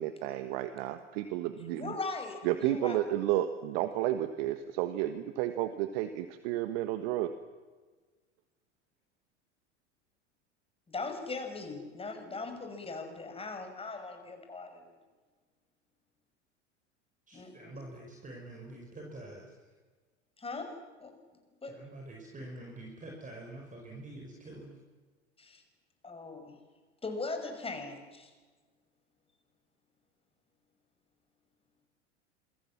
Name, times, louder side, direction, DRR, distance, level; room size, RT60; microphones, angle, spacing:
voice 1, 0.0-1.9 2.4-7.3, right 13 dB, 55° right, 10 dB, 1.5 m, -32 dB
voice 2, 1.7-3.0 10.9-14.8 17.3-17.8 20.4-21.1 21.6-21.8 25.4-25.6 26.0-26.6 27.0-28.3, left 3 dB, 15° left, 5 dB, 5.9 m, -39 dB
voice 3, 17.3-19.5 21.7-24.8, right 2 dB, 20° right, 1 dB, 5.4 m, -46 dB
27.5 x 22.5 x 7.5 m, 1.4 s
figure-of-eight pair, 80°, 35 cm